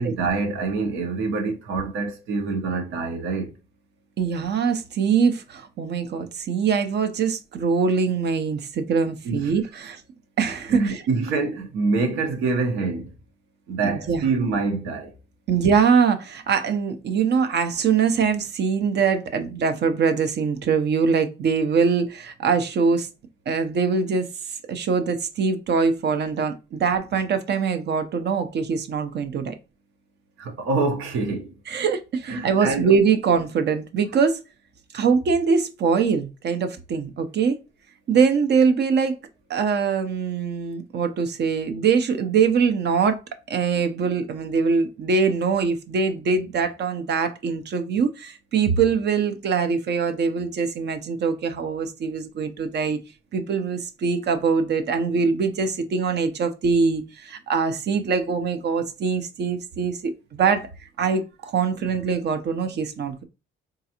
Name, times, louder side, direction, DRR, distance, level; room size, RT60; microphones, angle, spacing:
voice 1, 0.0-3.5 9.2-9.5 10.7-13.1 13.7-15.1 30.4-31.5 32.3-33.0, right 4 dB, 90° right, 0.9 m, -25 dB
voice 2, 4.2-10.0 10.4-11.0 14.1-14.2 15.5-23.1 23.5-24.3 24.7-29.5 31.7-34.4 34.9-37.6 38.1-39.1 39.5-43.2 43.5-53.0 53.3-60.7 61.0-63.2, right 5 dB, 60° right, 0.6 m, -23 dB
3.8 x 2.4 x 2.8 m
cardioid pair, 90°, 20 cm